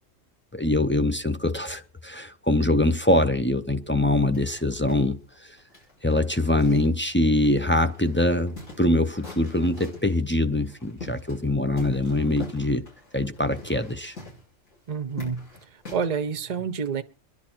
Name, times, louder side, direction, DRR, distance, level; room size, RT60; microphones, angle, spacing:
voice 1, 0.5-5.6 6.0-12.9 13.1-14.2, left 1 dB, 15° left, 0.4 m, -23 dB
sound 1, 4.3-7.1 7.4-7.5 7.9-10.1 10.7-11.5 11.7-16.2, left 3 dB, 65° left, 5.4 m, -43 dB
voice 2, 14.9-15.5 15.9-17.0, right 6 dB, 35° right, 0.8 m, -28 dB
26.5 x 10.5 x 4.5 m
omnidirectional pair, 1.4 m